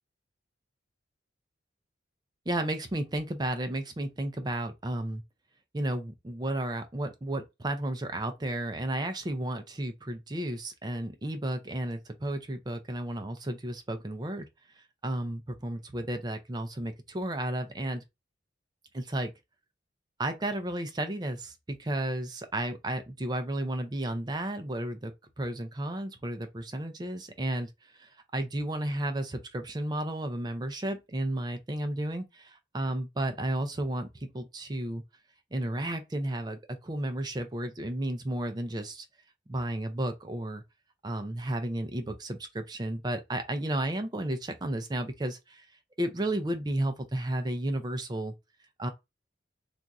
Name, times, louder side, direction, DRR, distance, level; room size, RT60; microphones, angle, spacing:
voice 1, 2.5-5.2 5.7-14.5 15.0-18.0 18.9-19.3 20.2-35.0 35.5-39.1 39.5-40.6 41.0-45.7 46.0-48.3 48.8-48.9, right 1 dB, 20° right, 0.4 m, -33 dB
2.5 x 2.3 x 3.9 m
head